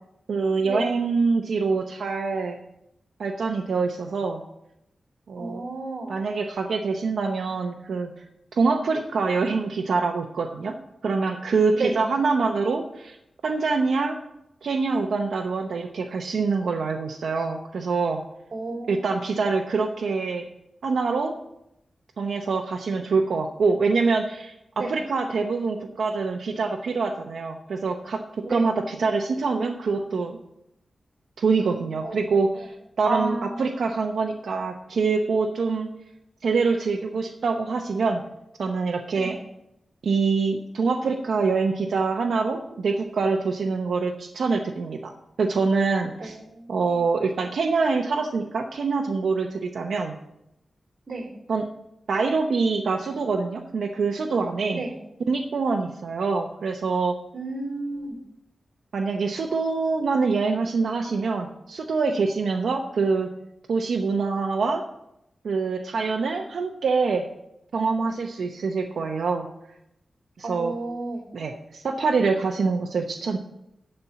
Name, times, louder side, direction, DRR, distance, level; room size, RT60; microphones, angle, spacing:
voice 1, 0.3-2.6 3.2-4.4 5.3-5.6 6.1-8.1 8.5-10.8 11.0-13.2 13.4-14.2 14.6-18.2 18.9-20.4 20.8-21.3 22.2-30.4 31.4-35.9 36.4-38.2 38.6-39.4 40.0-46.4 46.7-50.1 51.5-51.7 52.1-54.8 55.3-57.1 58.9-63.3 63.7-64.8 65.4-67.2 67.7-69.5 70.4-70.7 71.3-73.4, right 4 dB, 85° right, 3 dB, 0.8 m, -25 dB
voice 2, 5.4-6.1 11.8-12.0 18.5-19.0 24.8-25.0 28.4-28.7 32.0-32.7 33.0-33.7 39.2-39.3 46.2-46.7 51.1-51.3 54.7-55.0 57.3-58.2 70.4-71.2, right 2 dB, 50° right, 2 dB, 2.3 m, -31 dB
12.5 x 4.4 x 8.0 m, 0.83 s
wide cardioid pair, 145°, 0 cm